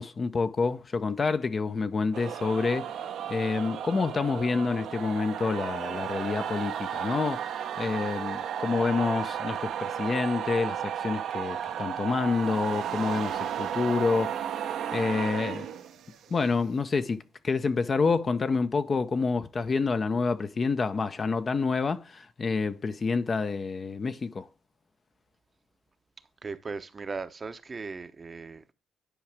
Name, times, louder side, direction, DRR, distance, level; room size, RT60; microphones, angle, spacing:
voice 1, 0.0-2.9 3.3-14.4 14.9-15.7 16.3-24.5, left 4 dB, 40° left, 0.7 m, -28 dB
sound 1, 2.1-16.3, right 9 dB, 75° right, 0.9 m, -34 dB
voice 2, 26.4-28.7, right 4 dB, 35° right, 0.8 m, -38 dB
10.0 x 4.8 x 3.4 m
cardioid pair, 90°, 0 cm